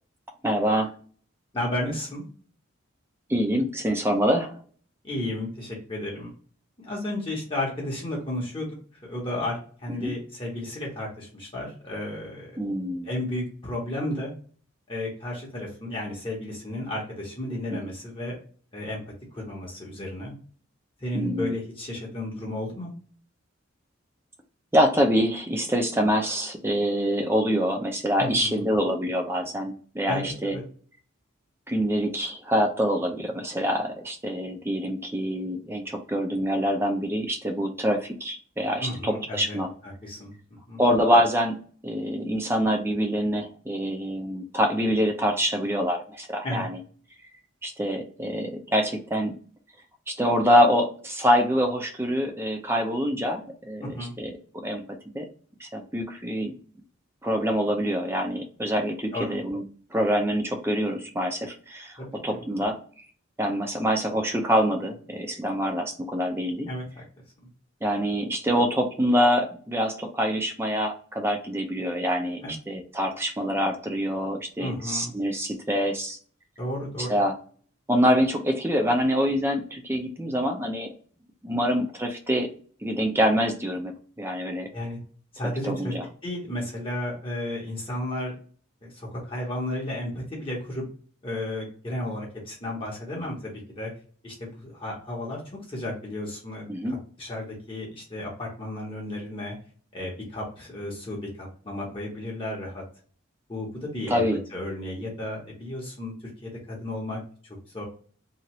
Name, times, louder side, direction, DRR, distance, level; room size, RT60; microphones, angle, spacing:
voice 1, 0.4-0.9 3.3-4.6 10.0-10.1 12.6-13.1 17.7-17.8 21.1-21.5 24.7-30.6 31.7-39.7 40.8-46.8 47.6-49.4 50.1-54.3 54.6-54.8 55.1-55.3 55.6-56.6 57.2-59.6 59.9-62.0 62.2-62.8 63.4-66.7 67.8-76.2 77.1-77.3 77.9-80.9 81.4-82.5 82.8-84.7 85.6-86.0 96.7-97.0 104.1-104.4, equal, 10° right, 4 dB, 0.5 m, -25 dB
voice 2, 1.5-2.3 5.0-6.3 6.8-8.7 9.0-12.5 13.0-14.3 14.9-18.4 18.7-19.0 19.3-20.4 21.0-22.9 28.2-28.6 30.1-30.6 38.8-39.6 39.8-40.4 40.7-40.8 46.4-46.7 53.8-54.1 59.1-59.4 62.0-62.4 66.6-66.8 72.4-72.5 74.6-75.1 76.6-77.1 84.7-85.0 85.3-85.9 86.2-88.4 88.8-90.8 91.2-93.9 94.2-96.6 97.2-99.5 99.9-102.8 103.5-104.2 104.5-106.1 106.4-107.2 107.7-107.8, left 1 dB, 25° left, -3 dB, 0.8 m, -33 dB
2.8 x 2.4 x 3.0 m, 0.43 s
head